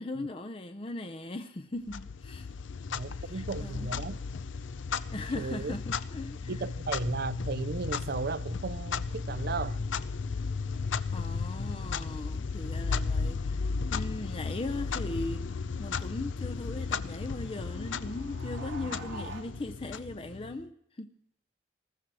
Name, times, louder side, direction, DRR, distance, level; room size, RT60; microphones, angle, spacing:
voice 1, 0.0-2.5 3.1-4.0 4.9-6.6 11.1-21.1, left 2 dB, 30° left, 0.5 m, -39 dB
Clock, 1.9-20.6, left 4 dB, 90° left, 0.6 m, -34 dB
voice 2, 2.9-4.2 5.3-5.8 6.5-9.8, right 4 dB, 55° right, 0.5 m, -35 dB
sound 1, 14.1-19.4, right 3 dB, 90° right, 2.0 m, -49 dB
20.0 x 15.0 x 4.7 m
head